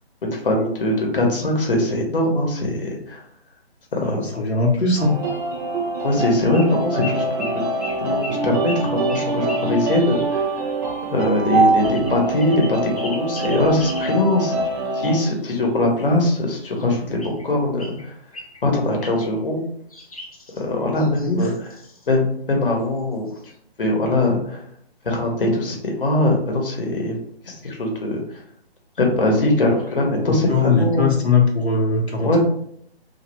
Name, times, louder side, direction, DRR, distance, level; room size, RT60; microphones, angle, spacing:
voice 1, 0.2-3.2 3.9-4.2 6.0-7.5 8.0-10.4 11.1-14.5 14.9-17.2 17.4-18.1 18.6-19.6 20.6-21.5 22.1-23.3 23.8-24.6 25.0-27.2 27.5-28.2 29.0-31.1 32.2-32.4, left 1 dB, 60° left, 0 dB, 0.9 m, -21 dB
voice 2, 4.0-5.1 21.2-21.5 30.3-32.4, left 4 dB, 90° left, -1 dB, 0.8 m, -20 dB
sound 1, 5.0-15.2, right 3 dB, 20° right, 0.6 m, -24 dB
sound 2, 6.5-6.7 7.0-10.3 11.8-14.1 14.7-15.7 16.5-17.5 17.8-18.6 19.0-19.3 19.9-22.1 23.0-23.1 23.3-23.6, left 2 dB, 35° left, 0.4 m, -39 dB
3.1 x 2.3 x 3.1 m, 0.66 s
figure-of-eight pair, 140°, 32 cm